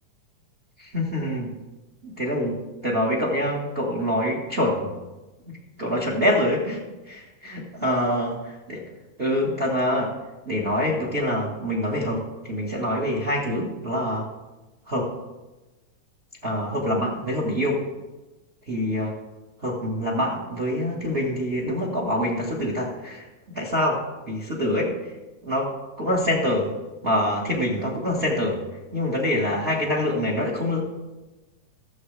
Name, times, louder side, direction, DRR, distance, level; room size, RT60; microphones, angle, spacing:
voice 1, 0.8-1.5 2.0-4.9 5.8-8.8 9.2-10.1 10.4-14.3 14.9-15.1 16.4-17.8 18.7-19.1 19.6-25.1 25.4-25.7 26.0-26.7 27.0-28.6 28.9-30.8, left 1 dB, 55° right, -2 dB, 0.6 m, -25 dB
17.0 x 7.4 x 3.3 m, 1.1 s
omnidirectional pair, 3.9 m